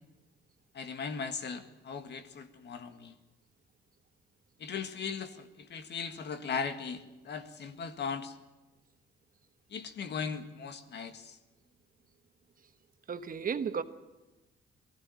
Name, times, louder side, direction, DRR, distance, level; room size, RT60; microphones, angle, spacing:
voice 1, 0.7-3.1 4.6-8.4 9.7-11.4, left 5 dB, 60° left, 9 dB, 1.8 m, -38 dB
voice 2, 13.1-13.8, right 6 dB, 45° right, 10 dB, 1.2 m, -33 dB
19.0 x 15.0 x 9.4 m, 1.1 s
cardioid pair, 90°, 20 cm